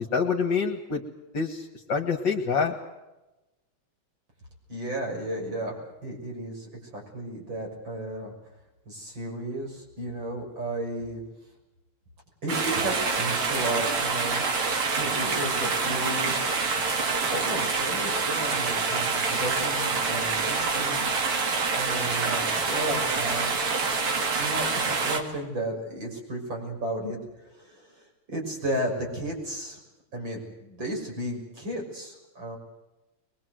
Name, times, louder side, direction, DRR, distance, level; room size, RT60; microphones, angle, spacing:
voice 1, 0.1-1.0 1.3-1.6 1.9-2.8, left 5 dB, 55° left, 1 dB, 2.4 m, -26 dB
voice 2, 4.7-5.8 6.0-8.3 8.9-11.2 12.4-14.4 14.9-17.0 17.3-21.2 21.7-23.5 24.4-29.8 30.1-32.6, right 1 dB, 60° right, 0 dB, 7.1 m, -34 dB
sound 1, 12.5-25.2, right 4 dB, 80° right, 3.3 m, -26 dB
23.0 x 22.5 x 7.9 m, 1.0 s
omnidirectional pair, 2.4 m